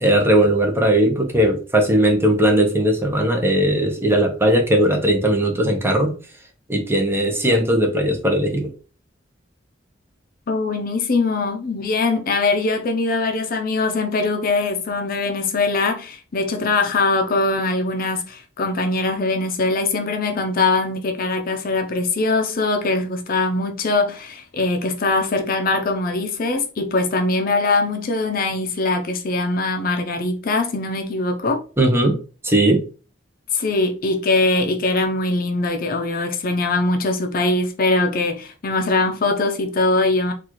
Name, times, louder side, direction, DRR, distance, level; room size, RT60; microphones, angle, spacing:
voice 1, 0.0-6.1 6.7-8.7 31.8-32.2 32.4-32.8, right 1 dB, 15° right, 0.8 m, -18 dB
voice 2, 10.5-31.6 33.5-40.3, left 3 dB, 50° left, 0.5 m, -22 dB
4.0 x 2.4 x 3.0 m
head